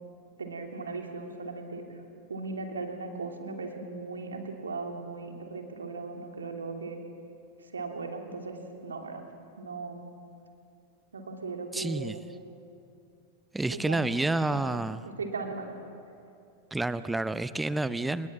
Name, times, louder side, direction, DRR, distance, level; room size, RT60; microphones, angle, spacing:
voice 1, 0.4-1.8 2.3-7.0 7.6-8.6 8.8-9.2 9.6-10.1 11.1-12.3 13.7-14.1 14.5-15.7, right 3 dB, 70° right, 3 dB, 3.0 m, -38 dB
voice 2, 11.7-12.2 13.5-15.1 16.7-18.3, right 2 dB, 5° right, 15 dB, 0.8 m, -29 dB
29.0 x 20.0 x 7.4 m, 2.6 s
figure-of-eight pair, 90°, 0 cm